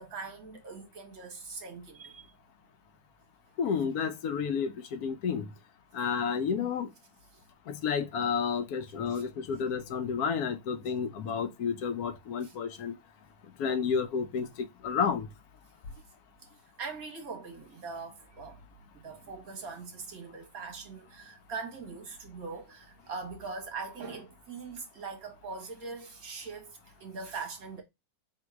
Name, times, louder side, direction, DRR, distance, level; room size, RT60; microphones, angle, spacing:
voice 1, 0.0-2.2 9.1-9.2 12.4-12.5 16.8-18.6 18.9-27.8, right 4 dB, 70° right, 1.8 m, -41 dB
voice 2, 3.6-5.5 5.9-6.9 7.7-12.9 13.6-15.3, left 6 dB, 75° left, 1.1 m, -31 dB
3.7 x 2.6 x 4.6 m
omnidirectional pair, 1.6 m